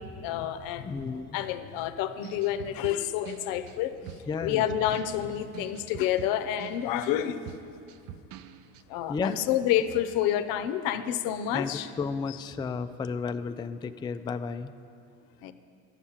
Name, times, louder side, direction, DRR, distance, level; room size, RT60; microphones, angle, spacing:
voice 1, 0.0-3.9 4.4-7.4 8.9-11.9 15.4-15.5, left 11 dB, 75° left, 11 dB, 0.7 m, -29 dB
voice 2, 0.8-1.4 4.3-4.6 9.1-9.4 11.5-14.7, left 5 dB, 15° left, 9 dB, 0.3 m, -32 dB
sound 1, 2.2-8.8, right 11 dB, 70° right, 0.5 m, -45 dB
9.9 x 7.3 x 7.1 m, 2.4 s
supercardioid pair, 80°, 34 cm